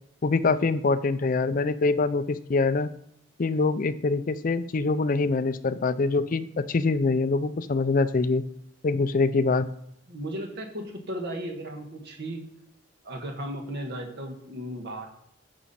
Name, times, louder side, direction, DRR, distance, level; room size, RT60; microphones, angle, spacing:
voice 1, 0.2-2.9 3.4-8.4 8.8-9.7, left 3 dB, 45° left, 12 dB, 0.4 m, -24 dB
voice 2, 10.1-12.4 13.0-15.1, right 1 dB, 60° right, 3 dB, 1.4 m, -35 dB
8.9 x 6.1 x 4.2 m, 0.73 s
head